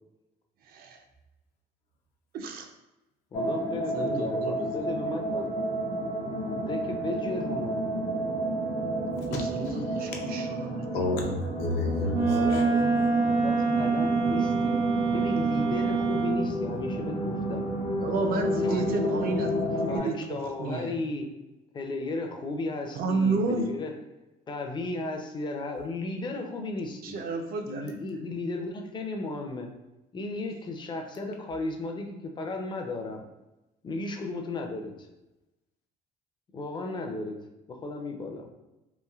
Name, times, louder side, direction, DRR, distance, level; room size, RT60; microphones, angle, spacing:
voice 1, 0.6-1.0 2.3-2.7 3.9-4.6 9.3-10.9 18.0-21.0 22.9-23.7 27.0-28.0, right 4 dB, 60° right, 5 dB, 0.4 m, -31 dB
sound 1, 3.3-20.0, right 1 dB, 65° left, 1.0 m, -31 dB
voice 2, 3.3-5.5 6.5-7.9 12.3-14.7 15.1-17.7 18.6-19.2 19.9-21.3 21.7-23.9 24.5-27.2 27.7-29.7 30.1-33.3 33.8-35.1 36.5-37.4 37.7-38.5, left 2 dB, 25° left, 3 dB, 0.4 m, -35 dB
voice 3, 9.2-10.1 10.9-12.6, left 2 dB, 80° left, 1 dB, 0.6 m, -31 dB
Wind instrument woodwind instrument, 12.1-16.5, right 4 dB, 80° right, 1.1 m, -25 dB
3.1 x 2.5 x 2.3 m, 0.99 s
cardioid pair, 110°, 17 cm